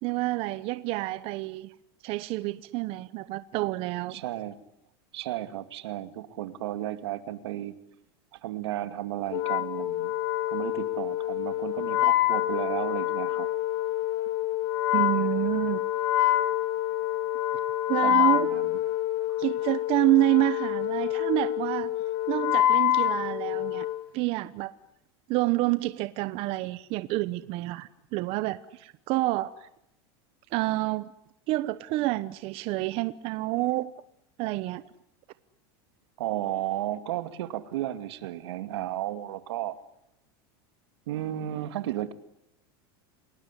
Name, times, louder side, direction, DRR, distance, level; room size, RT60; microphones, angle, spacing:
voice 1, 0.0-1.7 2.0-4.2 14.9-15.8 17.9-18.5 19.4-21.9 22.3-23.9 24.1-24.7 25.3-29.7 30.5-31.1 31.5-33.9 34.4-34.8, right 18 dB, 45° right, 1.0 m, -28 dB
voice 2, 4.1-4.6 5.1-7.7 8.3-10.1 10.5-13.5 18.0-18.8 36.2-39.8 41.1-42.1, right 13 dB, 85° right, 2.5 m, -33 dB
Wind instrument woodwind instrument, 9.3-24.0, left 14 dB, 60° left, 2.2 m, -27 dB
29.5 x 19.5 x 10.0 m
supercardioid pair, 150°, 13 cm